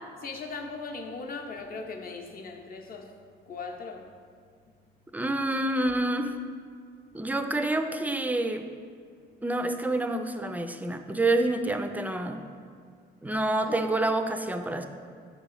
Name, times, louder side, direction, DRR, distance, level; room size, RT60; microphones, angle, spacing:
voice 1, 0.2-3.2 3.5-4.1 13.6-13.8, left 4 dB, 45° left, 3 dB, 0.7 m, -38 dB
voice 2, 5.1-6.4 7.1-8.7 9.4-12.5 13.2-14.9, right 2 dB, 10° right, 7 dB, 0.3 m, -28 dB
6.3 x 3.0 x 5.4 m, 2.1 s
cardioid pair, 90°, 20 cm